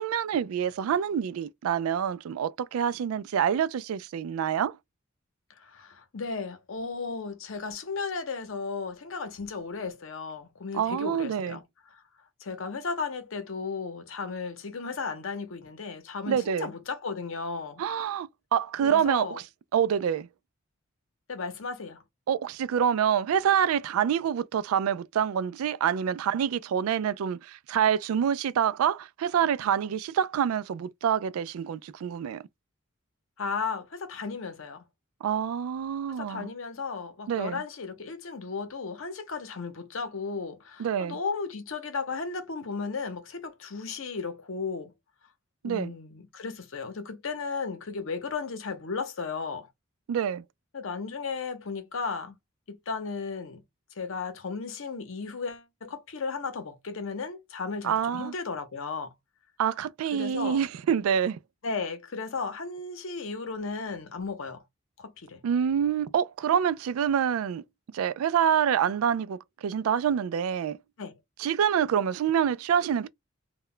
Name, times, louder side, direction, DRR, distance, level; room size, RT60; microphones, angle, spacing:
voice 1, 0.0-4.8 10.7-11.6 16.3-16.7 17.8-19.4 19.7-20.3 22.3-32.4 35.2-36.5 37.3-37.6 40.8-41.2 45.6-45.9 50.1-50.4 57.8-58.3 59.6-61.4 65.4-67.6 67.9-70.8 71.4-73.1, right 8 dB, 85° right, 0.3 m, -26 dB
voice 2, 5.6-11.6 12.4-17.8 18.8-19.4 21.3-22.0 33.4-34.8 36.1-44.9 45.6-49.7 50.7-52.4 52.7-53.6 54.0-59.1 60.1-60.6 61.6-64.6 65.0-65.4 71.0-71.1, left 4 dB, 65° left, 0.7 m, -35 dB
2.2 x 2.1 x 3.7 m
head